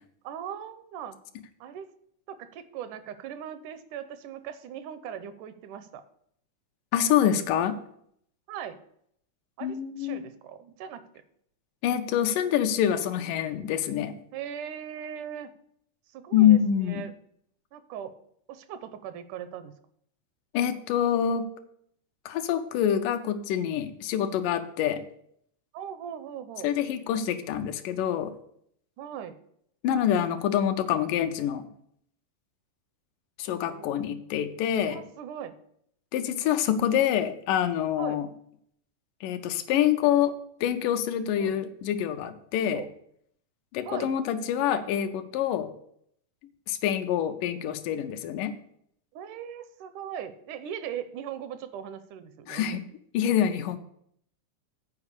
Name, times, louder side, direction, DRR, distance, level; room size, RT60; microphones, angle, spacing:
voice 1, 0.2-1.2 1.6-1.9 2.3-6.0 8.5-8.8 9.6-11.1 14.3-15.5 16.1-17.1 17.7-18.1 18.5-19.7 25.7-26.7 29.0-29.4 33.7-33.9 34.8-35.6 38.0-38.3 41.4-41.6 42.7-42.9 43.9-44.1 49.1-52.8, right 9 dB, 80° right, 11 dB, 2.1 m, -39 dB
voice 2, 6.9-7.8 9.6-10.2 11.8-14.2 16.3-17.0 20.5-21.5 22.3-25.0 26.6-28.3 29.8-31.7 33.4-35.0 36.1-38.3 39.2-40.3 40.6-42.8 43.7-45.7 46.7-48.5 52.5-52.8 53.1-53.8, left 10 dB, 90° left, 8 dB, 2.3 m, -26 dB
8.5 x 4.9 x 6.5 m, 0.69 s
omnidirectional pair, 3.7 m